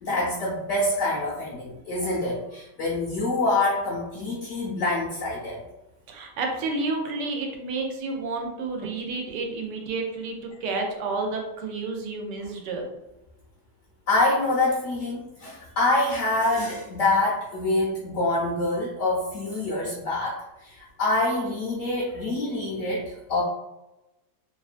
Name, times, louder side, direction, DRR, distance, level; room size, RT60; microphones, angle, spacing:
voice 1, 0.0-5.6 14.1-23.4, left 2 dB, 70° left, -4 dB, 0.7 m, -26 dB
voice 2, 6.1-12.9, right 3 dB, 90° right, 2 dB, 1.2 m, -30 dB
2.9 x 2.2 x 2.4 m, 0.97 s
omnidirectional pair, 1.8 m